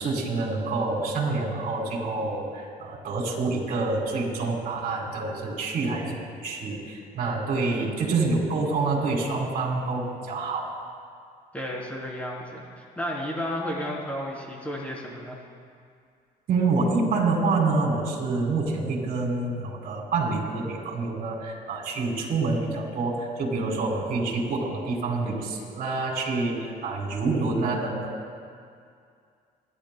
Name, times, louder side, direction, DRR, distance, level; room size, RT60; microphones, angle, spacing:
voice 1, 0.0-10.7 16.5-28.3, right 3 dB, 55° right, -2 dB, 3.4 m, -27 dB
voice 2, 11.5-15.4, equal, 10° left, -4 dB, 3.4 m, -33 dB
30.0 x 11.0 x 2.2 m, 2.3 s
cardioid pair, 110°, 17 cm